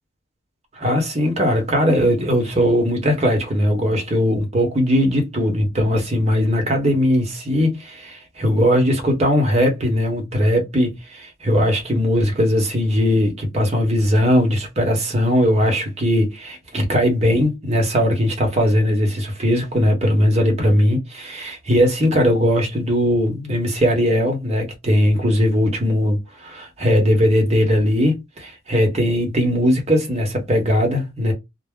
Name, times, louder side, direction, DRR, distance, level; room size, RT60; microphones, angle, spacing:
voice 1, 0.7-31.3, equal, 30° right, 0.9 m, -19 dB
2.2 x 2.0 x 3.5 m
head